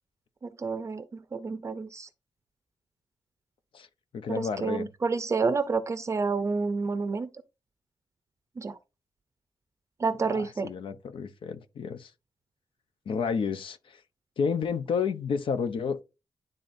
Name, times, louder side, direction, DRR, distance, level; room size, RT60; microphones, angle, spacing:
voice 1, 0.4-2.1 4.3-7.3 8.6-8.8 10.0-10.7, right 4 dB, 35° right, 0.5 m, -29 dB
voice 2, 4.1-4.9 10.2-12.1 13.1-14.0 14.4-16.0, left 6 dB, 75° left, 0.8 m, -31 dB
11.0 x 3.8 x 2.6 m
wide cardioid pair, 155°, 9 cm